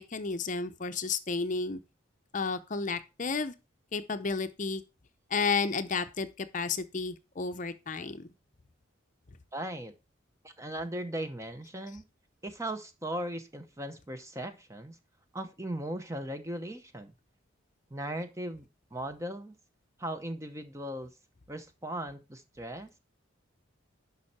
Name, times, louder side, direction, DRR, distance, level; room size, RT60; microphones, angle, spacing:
voice 1, 0.0-1.8 2.3-3.5 3.9-4.8 5.3-8.3, left 4 dB, 40° left, 0.6 m, -32 dB
voice 2, 9.5-9.9 10.4-12.0 12.4-15.0 15.3-17.1 17.9-19.5 20.0-21.1 21.5-22.9, right 1 dB, 15° right, 0.8 m, -38 dB
11.0 x 5.5 x 4.2 m
head